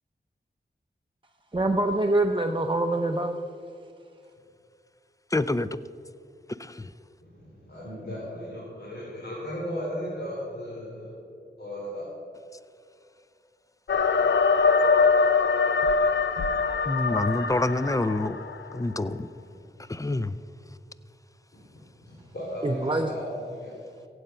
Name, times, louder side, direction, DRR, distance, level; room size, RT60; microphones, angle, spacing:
voice 1, 1.5-3.4 22.6-23.1, right 2 dB, 25° right, 0.8 m, -25 dB
voice 2, 5.3-5.7 6.6-6.9 16.9-18.4 18.7-19.3 19.8-20.4, left 2 dB, 20° left, 0.5 m, -27 dB
voice 3, 7.2-11.1 11.6-12.1 21.5-21.6 22.1-23.7, equal, 65° left, 3.8 m, -36 dB
sound 1, 13.9-18.7, left 4 dB, 80° left, 0.7 m, -23 dB
16.0 x 8.0 x 5.7 m
cardioid pair, 45°, 19 cm